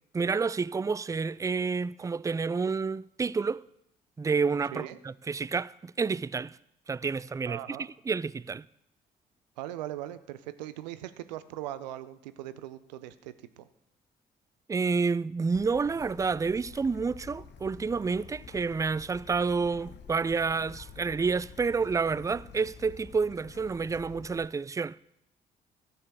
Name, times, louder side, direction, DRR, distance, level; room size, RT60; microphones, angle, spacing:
voice 1, 0.1-3.6 4.2-6.6 6.9-7.8 8.1-8.6 14.7-25.0, right 4 dB, 15° right, 0.3 m, -29 dB
voice 2, 7.5-7.9 9.6-13.7, right 13 dB, 85° right, 0.6 m, -40 dB
Bird / Stream, 15.5-24.5, left 6 dB, 55° left, 1.1 m, -49 dB
13.5 x 7.1 x 6.7 m
hypercardioid pair, 40°, 21 cm